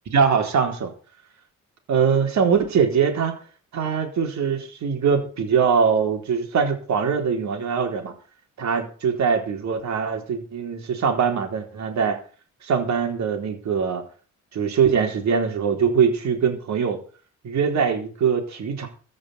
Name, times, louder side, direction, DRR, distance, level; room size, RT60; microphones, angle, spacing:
voice 1, 0.1-0.9 1.9-3.3 3.7-8.1 8.6-12.2 12.6-14.0 14.5-17.0 17.4-18.9, right 6 dB, 65° right, 4 dB, 4.1 m, -22 dB
15.0 x 6.5 x 8.2 m, 0.40 s
cardioid pair, 90°, 30 cm